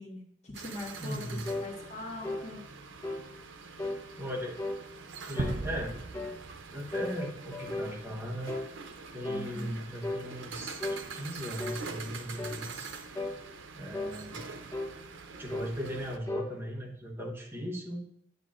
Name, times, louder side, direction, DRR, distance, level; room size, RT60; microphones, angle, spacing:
voice 1, 0.0-2.6 9.3-9.8, left 2 dB, 40° left, -2 dB, 1.6 m, -42 dB
sound 1, 0.5-16.2, right 4 dB, 90° right, 0.7 m, -45 dB
voice 2, 1.0-1.5 4.2-4.6 5.2-6.0 6.7-8.5 9.1-12.9 13.8-14.6 15.4-18.0, equal, 10° right, -1 dB, 1.0 m, -38 dB
sound 2, 1.5-1.7 2.2-2.5 3.0-3.3 3.8-4.0 4.6-4.8 5.4-5.6 6.1-6.4 6.9-7.9 8.5-8.7 9.2-9.5 10.0-10.3 10.8-11.1 11.6-11.8 12.4-12.6 13.2-13.4 13.9-14.2 14.7-15.0 15.5-15.7 16.3-16.5, left 2 dB, 15° left, 0.8 m, -35 dB
sound 3, 5.4-7.8, right 2 dB, 35° right, 0.5 m, -37 dB
8.9 x 8.3 x 2.5 m, 0.71 s
head